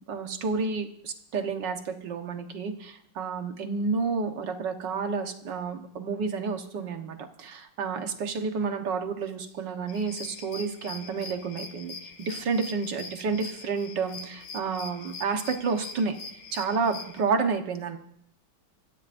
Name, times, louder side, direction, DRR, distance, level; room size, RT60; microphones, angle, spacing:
voice 1, 0.1-11.9 12.2-16.1 16.5-18.0, right 5 dB, 60° right, 5 dB, 1.9 m, -30 dB
sound 1, 9.9-17.2, left 4 dB, 85° left, 2.2 m, -43 dB
26.0 x 14.5 x 2.6 m, 0.73 s
omnidirectional pair, 2.2 m